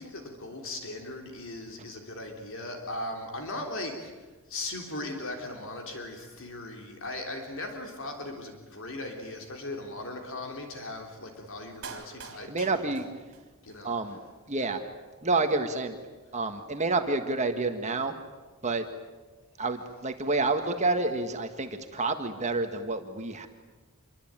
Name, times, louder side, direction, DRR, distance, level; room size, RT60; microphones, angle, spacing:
voice 1, 0.0-4.1 4.5-12.7 13.6-13.9, left 2 dB, 60° left, 3 dB, 3.5 m, -38 dB
Clapping, 11.8-13.8 14.1-14.2, right 5 dB, 55° right, 3.6 m, -45 dB
voice 2, 12.3-13.0 13.8-14.2 14.5-14.8 15.2-16.0 16.3-18.1 18.6-18.9 19.6-23.5, right 3 dB, 30° right, 6 dB, 1.7 m, -29 dB
27.5 x 23.0 x 9.0 m, 1.3 s
head